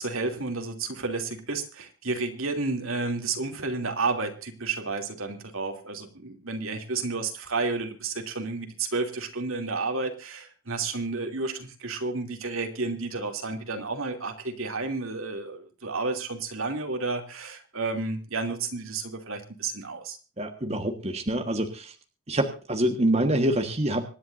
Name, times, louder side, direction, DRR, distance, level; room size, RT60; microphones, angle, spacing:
voice 1, 0.0-20.2, right 3 dB, 75° right, 4 dB, 2.8 m, -31 dB
voice 2, 20.4-21.9 22.3-24.0, right 1 dB, 30° right, 5 dB, 1.4 m, -26 dB
25.5 x 10.5 x 2.6 m, 0.38 s
head